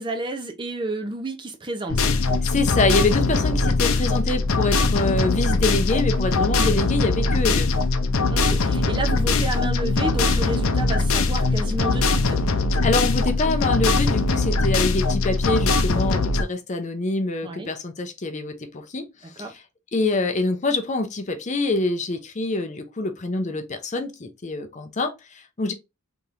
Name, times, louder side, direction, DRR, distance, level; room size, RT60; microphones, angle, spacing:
voice 1, 0.0-2.1 8.3-12.4 17.4-17.7 19.4-19.5, right 2 dB, 20° right, 0.6 m, -30 dB
sound 1, 1.9-16.4, left 3 dB, 75° left, 0.6 m, -21 dB
voice 2, 2.4-7.7 12.8-19.1 19.4-19.6 19.9-25.7, left 2 dB, 35° left, 0.6 m, -25 dB
3.5 x 2.9 x 2.5 m
head